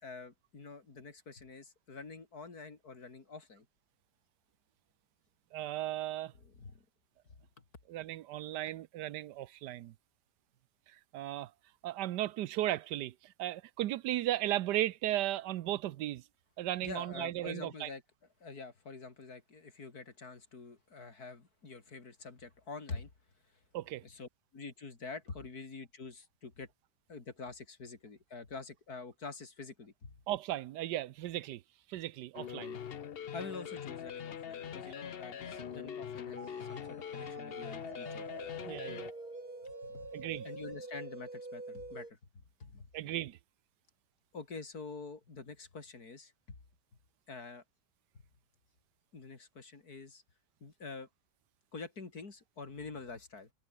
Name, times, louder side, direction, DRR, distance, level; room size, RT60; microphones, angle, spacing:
voice 1, 0.0-3.7 6.4-6.8 7.6-7.7 16.8-18.0 18.4-23.1 24.0-26.7 27.1-30.2 33.3-38.3 39.6-40.1 40.4-42.9 44.3-46.6 47.3-47.6 49.1-50.2 50.6-51.1 51.7-53.5, left 4 dB, 65° left, 3.6 m, -46 dB
voice 2, 5.5-6.3 7.9-9.9 11.1-11.5 11.8-16.2 16.6-17.9 23.7-24.0 30.3-31.6 31.9-32.8 38.7-39.1 40.1-40.5 42.9-43.4, right 14 dB, 85° right, 1.3 m, -36 dB
sound 1, 32.3-39.1, left 8 dB, 50° left, 0.8 m, -43 dB
sound 2, 35.4-42.1, right 2 dB, 60° right, 5.8 m, -46 dB
omnidirectional pair, 1.8 m